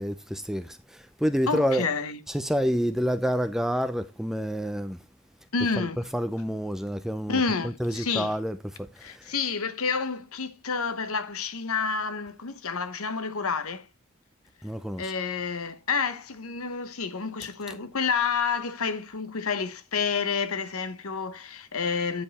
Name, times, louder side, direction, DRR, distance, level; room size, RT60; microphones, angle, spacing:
voice 1, 0.0-1.9 2.3-5.0 5.8-5.9 6.1-9.3 14.6-15.1, equal, ahead, 0.5 m, -28 dB
voice 2, 1.5-2.2 5.5-6.0 7.3-8.3 9.0-13.9 15.0-22.2, left 5 dB, 70° left, 1.0 m, -29 dB
9.4 x 5.1 x 4.2 m
head